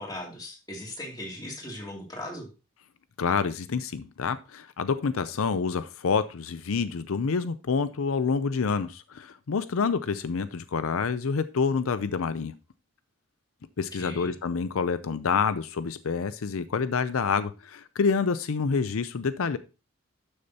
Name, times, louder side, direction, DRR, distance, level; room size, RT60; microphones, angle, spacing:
voice 1, 0.0-2.5 13.9-14.3, left 1 dB, 20° left, -1 dB, 2.6 m, -38 dB
voice 2, 3.2-12.5 13.8-19.6, left 5 dB, 80° left, 13 dB, 0.5 m, -27 dB
12.0 x 6.6 x 2.8 m, 0.31 s
head